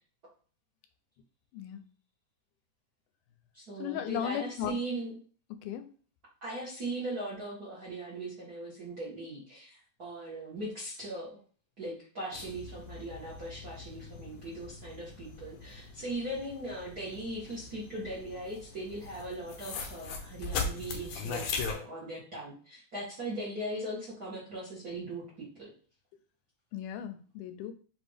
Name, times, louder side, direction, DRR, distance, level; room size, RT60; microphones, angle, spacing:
voice 1, 1.5-1.8 3.8-4.7 5.6-5.9 26.7-27.7, left 9 dB, 90° left, 9 dB, 2.1 m, -36 dB
voice 2, 3.5-5.1 6.4-11.4 11.8-25.7, right 1 dB, 55° right, -6 dB, 1.1 m, -39 dB
sound 1, 12.3-21.7, left 4 dB, 75° left, 1.7 m, -40 dB
5.6 x 2.6 x 3.4 m, 0.42 s
omnidirectional pair, 3.5 m